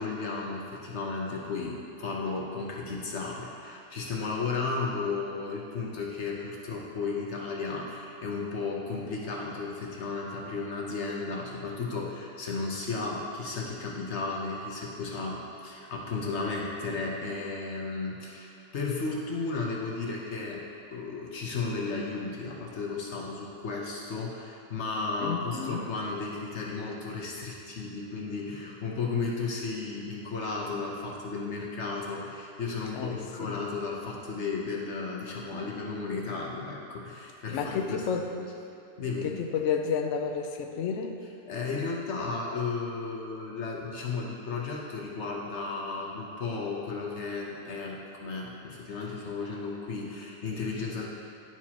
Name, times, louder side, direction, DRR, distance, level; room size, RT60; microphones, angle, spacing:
voice 1, 0.0-20.6 20.9-38.1 38.4-38.5 39.0-39.4 41.5-51.1, left 4 dB, 55° left, -2 dB, 0.8 m, -34 dB
voice 2, 25.2-25.9 32.9-33.6 37.5-38.3 39.2-41.2, left 6 dB, 90° left, 4 dB, 0.6 m, -31 dB
11.0 x 4.5 x 2.9 m, 2.7 s
omnidirectional pair, 1.9 m